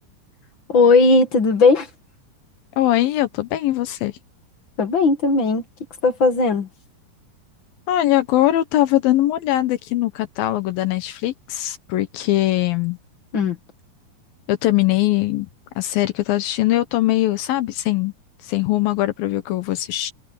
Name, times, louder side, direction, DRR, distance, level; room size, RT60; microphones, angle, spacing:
voice 1, 0.7-1.9 4.8-5.6 6.0-6.7 13.3-13.6, left 3 dB, 45° left, 1.6 m, -16 dB
voice 2, 2.8-4.1 7.9-13.0 14.5-15.5 15.8-18.1 18.4-20.1, left 15 dB, 70° left, 2.4 m, -21 dB
omnidirectional pair, 4.9 m